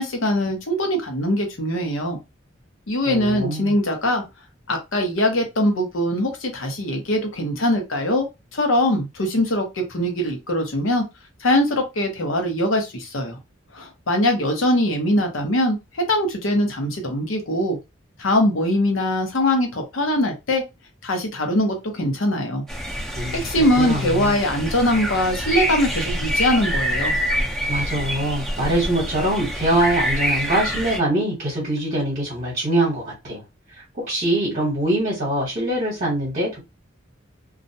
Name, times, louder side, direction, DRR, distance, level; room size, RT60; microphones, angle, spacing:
voice 1, 0.0-2.2 2.9-4.2 4.7-8.3 8.5-11.0 11.4-13.4 13.7-17.8 18.2-20.6 21.0-22.6 23.4-27.1, left 1 dB, 80° left, 0.8 m, -22 dB
voice 2, 3.1-3.7 23.2-23.5 23.8-24.4 27.7-33.4 33.7-36.6, right 1 dB, 40° right, 0.9 m, -23 dB
sound 1, 22.7-31.0, equal, ahead, 0.5 m, -26 dB
2.4 x 2.0 x 2.7 m
head